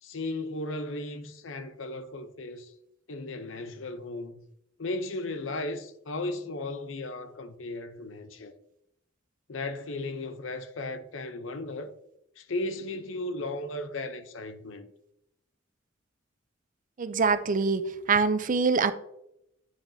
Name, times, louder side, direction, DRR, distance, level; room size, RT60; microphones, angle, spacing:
voice 1, 0.0-2.7 3.1-4.4 4.8-8.5 9.5-11.9 12.4-14.9, left 2 dB, 75° left, 0.7 m, -35 dB
voice 2, 17.0-18.9, right 4 dB, 45° right, 0.5 m, -24 dB
9.4 x 5.9 x 2.7 m
head